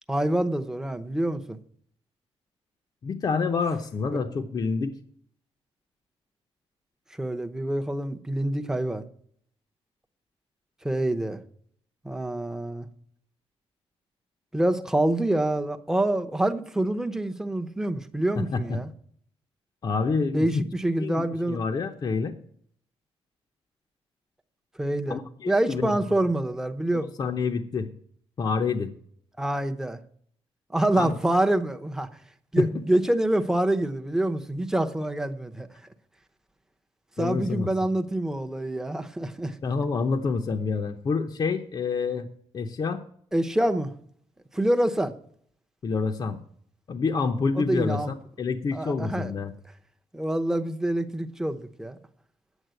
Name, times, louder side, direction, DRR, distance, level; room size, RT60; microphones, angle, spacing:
voice 1, 0.1-1.6 7.2-9.0 10.8-11.4 12.0-12.9 14.5-18.9 20.3-21.6 24.8-25.2 25.5-27.1 29.4-30.0 30.7-32.1 32.5-35.7 37.2-39.5 43.3-43.9 44.5-45.1 47.6-48.1 48.7-49.3 50.1-52.0, right 1 dB, 5° right, 0.8 m, -26 dB
voice 2, 3.0-4.9 18.4-18.8 19.8-20.6 21.0-22.3 25.1-25.9 26.9-27.9 28.4-28.9 31.0-31.2 32.6-32.8 37.2-37.7 39.6-42.3 42.5-43.0 45.8-46.4 46.9-49.5, left 4 dB, 40° left, 0.7 m, -28 dB
9.8 x 8.2 x 7.7 m
cardioid pair, 140°, 11 cm